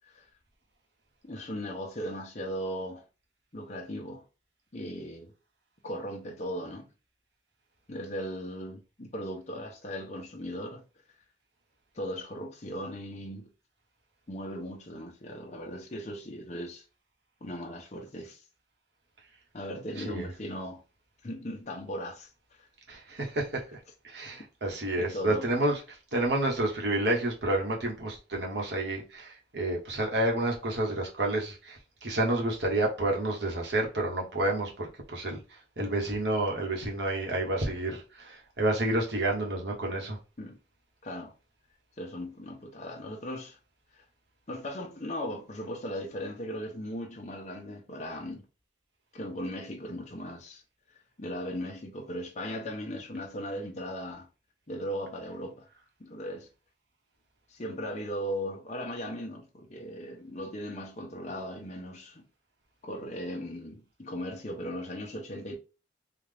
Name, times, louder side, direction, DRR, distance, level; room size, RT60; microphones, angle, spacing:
voice 1, 1.2-3.0 3.5-4.2 4.7-5.3 5.8-6.9 7.9-10.8 11.9-13.5 14.3-16.8 17.4-18.4 19.5-20.8 21.2-22.3 25.0-25.5 40.4-40.6 41.0-41.3 42.0-43.6 44.0-44.1 44.5-48.4 49.1-50.6 51.2-54.3 54.7-55.7 56.0-56.5 57.5-62.3 62.8-65.6, equal, 40° left, 0.8 m, -37 dB
voice 2, 20.0-20.3 22.9-23.8 24.0-35.4 35.8-40.2, right 1 dB, 65° right, 1.2 m, -30 dB
3.9 x 2.4 x 3.4 m
head